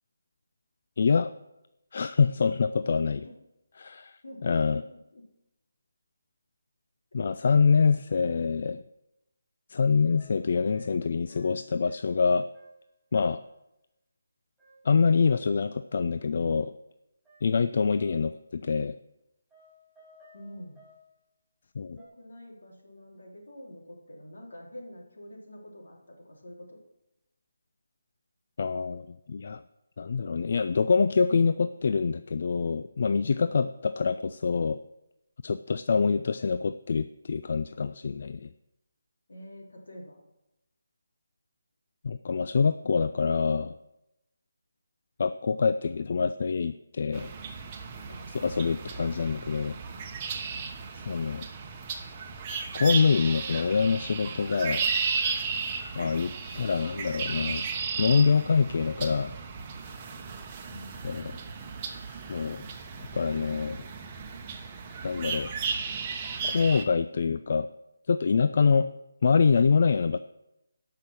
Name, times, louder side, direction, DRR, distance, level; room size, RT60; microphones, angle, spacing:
voice 1, 1.0-1.3 1.9-3.3 3.8-4.8 7.1-8.8 9.7-12.5 13.1-13.4 14.8-16.7 17.4-19.0 21.8-22.0 28.6-29.6 30.0-34.8 35.4-38.5 42.0-43.7 45.2-47.3 48.1-49.8 50.9-51.5 52.7-54.9 56.0-57.7 58.0-59.4 61.0-61.4 62.3-62.6 63.1-63.8 65.0-65.5 66.4-67.7 68.1-68.9 69.2-70.2, left 5 dB, 50° left, 12 dB, 0.4 m, -25 dB
voice 2, 4.2-5.3 7.3-7.4 20.3-20.8 21.9-26.8 39.3-40.2 48.0-48.3 50.5-50.8 56.4-56.7 60.7-62.0, equal, 75° left, -1 dB, 3.4 m, -47 dB
sound 1, 10.1-12.2 12.5-12.9 13.1-13.5 14.6-15.6 17.3-18.5 19.5-21.1 22.0-22.1, left 1 dB, ahead, 5.0 m, -59 dB
sound 2, 47.1-66.8, right 5 dB, 25° right, 1.1 m, -35 dB
13.5 x 5.7 x 6.2 m, 0.90 s
figure-of-eight pair, 160°, 0 cm